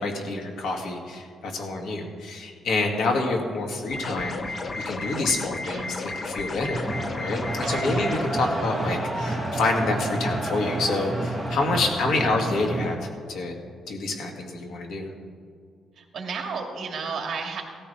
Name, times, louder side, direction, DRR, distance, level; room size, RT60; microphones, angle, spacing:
voice 1, 0.0-13.6 13.9-15.1, left 2 dB, 75° left, 1 dB, 2.3 m, -28 dB
sound 1, 3.9-8.3, left 3 dB, 35° left, 1.0 m, -33 dB
sound 2, 6.7-12.9, right 1 dB, 10° left, 2.0 m, -29 dB
voice 2, 7.6-8.6 16.0-17.6, right 5 dB, 50° right, 2 dB, 2.2 m, -34 dB
16.5 x 14.0 x 3.4 m, 2.1 s
cardioid pair, 135°, 0 cm